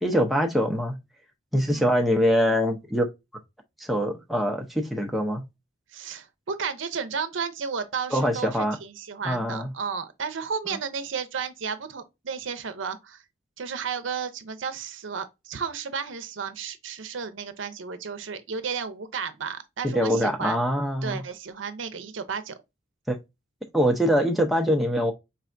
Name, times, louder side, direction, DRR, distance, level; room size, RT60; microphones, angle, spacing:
voice 1, 0.0-1.0 1.5-3.1 3.8-5.4 8.1-8.8 9.2-9.7 10.7-10.8 19.8-21.2 23.1-23.2 23.7-25.1, equal, ahead, 0.6 m, -23 dB
voice 2, 5.9-13.2 13.6-20.6 21.0-22.6, right 6 dB, 80° right, 0.6 m, -33 dB
4.3 x 3.3 x 2.5 m
head